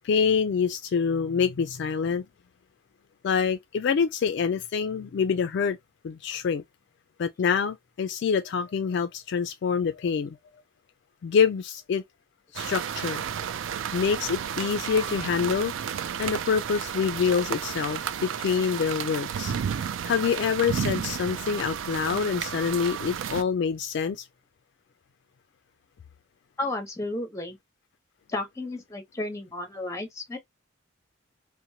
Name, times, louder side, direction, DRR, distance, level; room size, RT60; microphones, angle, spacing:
voice 1, 0.0-2.2 3.2-5.8 6.0-6.6 7.2-10.4 11.2-12.0 12.5-13.2 13.9-15.7 16.2-19.5 20.0-24.3, left 6 dB, 60° left, 0.3 m, -26 dB
sound 1, 12.6-23.4, right 8 dB, 70° right, 0.3 m, -32 dB
voice 2, 26.6-27.6 28.3-30.4, left 2 dB, 15° left, 0.7 m, -33 dB
2.8 x 2.1 x 2.7 m
head